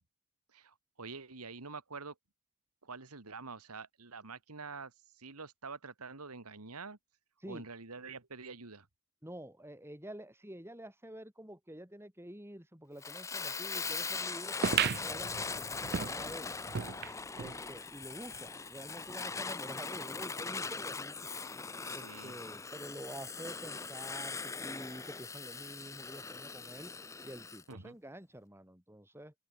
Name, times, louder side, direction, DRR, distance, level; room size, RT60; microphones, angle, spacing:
voice 1, 0.5-2.2 2.8-7.0 7.5-8.9 21.9-22.4 27.7-28.0, right 4 dB, 90° right, 2.1 m, -46 dB
voice 2, 9.2-16.6 17.4-21.1 21.9-29.3, right 1 dB, 10° right, 6.7 m, -48 dB
Fire, 13.0-27.6, left 4 dB, 15° left, 0.5 m, -40 dB
sound 1, 14.6-17.6 18.0-18.1 18.3-18.4 19.2-19.3, right 7 dB, 45° right, 0.5 m, -35 dB
open air
head